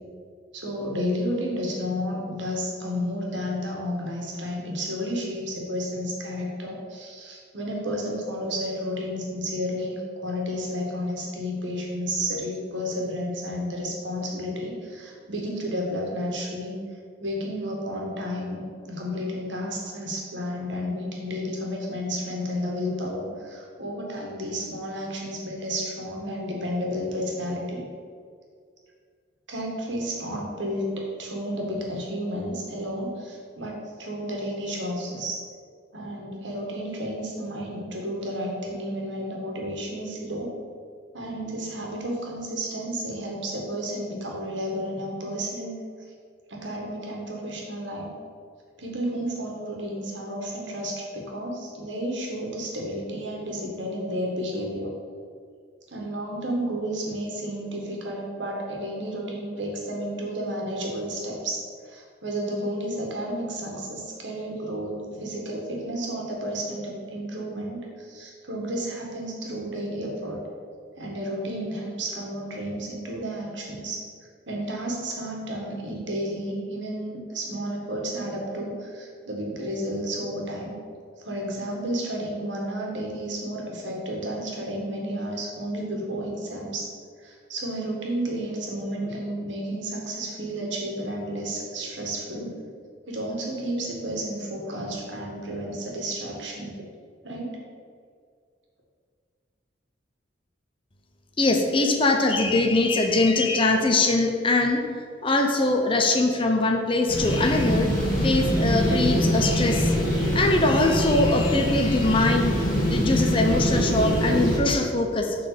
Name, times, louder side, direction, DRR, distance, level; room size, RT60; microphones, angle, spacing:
voice 1, 0.5-16.8 17.2-27.8 29.5-30.9 31.2-35.4 35.9-40.5 41.1-45.7 46.5-48.1 48.8-54.9 55.9-70.4 71.0-74.0 74.5-80.8 81.2-86.9 87.2-92.6 93.1-96.8 97.2-97.6, equal, 70° right, -1 dB, 1.8 m, -31 dB
voice 2, 101.4-104.8 105.2-107.9 108.2-110.0 110.3-112.6 112.8-115.4, left 2 dB, 25° left, 3 dB, 0.7 m, -22 dB
sound 1, 107.1-114.6, equal, 45° left, 1.9 m, -24 dB
7.8 x 4.2 x 6.8 m, 2.1 s
head